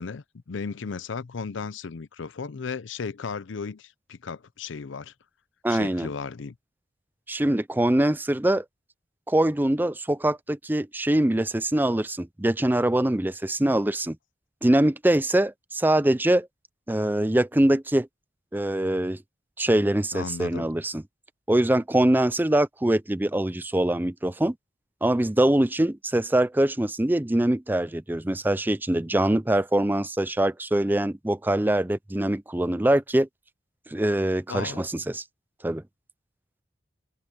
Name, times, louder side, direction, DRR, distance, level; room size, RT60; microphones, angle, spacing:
voice 1, 0.0-5.1 5.7-6.5 20.1-20.7 34.5-34.8, left 5 dB, 85° left, 0.6 m, -35 dB
voice 2, 5.6-6.1 7.3-8.6 9.3-14.2 14.6-16.5 16.9-18.1 18.5-19.2 19.6-21.0 21.5-24.5 25.0-33.3 33.9-35.2 35.6-35.8, right 1 dB, 10° right, 0.5 m, -23 dB
head